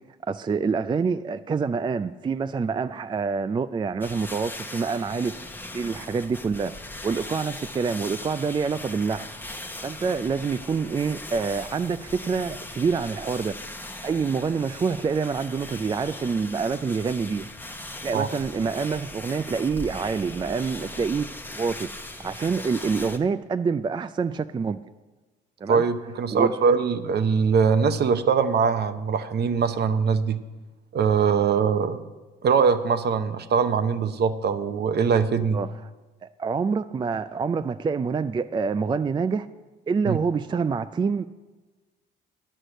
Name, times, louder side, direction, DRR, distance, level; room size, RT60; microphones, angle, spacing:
voice 1, 0.3-5.3 5.7-6.7 7.0-9.3 9.8-13.5 14.0-17.5 18.0-21.3 21.6-21.9 22.2-24.8 25.6-25.8 26.3-26.8 35.5-35.7 36.2-39.5 39.9-41.3, right 5 dB, 25° right, 12 dB, 0.3 m, -26 dB
sound 1, 4.0-23.2, left 2 dB, 10° left, 0.9 m, -39 dB
voice 2, 25.7-30.4 30.9-32.0 32.4-35.6 40.0-40.2, right 6 dB, 55° right, 11 dB, 0.8 m, -22 dB
9.9 x 6.4 x 7.7 m, 1.2 s
cardioid pair, 90°, 20 cm